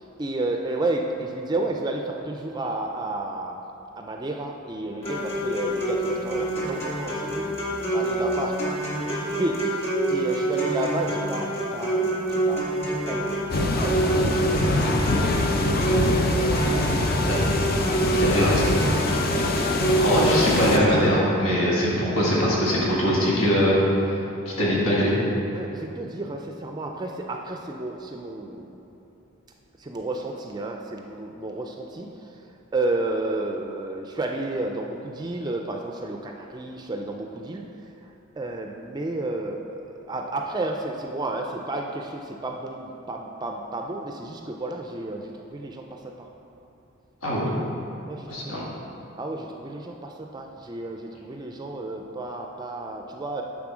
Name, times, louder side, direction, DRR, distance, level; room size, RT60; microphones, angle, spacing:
voice 1, 0.0-3.6 4.0-7.6 7.9-8.6 9.0-17.5 25.5-28.8 29.8-32.4 32.7-37.6 38.4-46.3 48.1-48.6 49.2-53.4, right 2 dB, 20° right, 2 dB, 0.4 m, -32 dB
sound 1, 5.0-21.0, right 1 dB, 30° left, 2.0 m, -27 dB
sound 2, 13.5-20.8, left 2 dB, 45° left, 0.5 m, -24 dB
voice 2, 18.1-18.7 20.0-23.8 24.5-25.1 47.2-47.5 48.3-48.6, equal, 85° left, -6 dB, 1.8 m, -22 dB
9.7 x 3.8 x 6.1 m, 2.9 s
head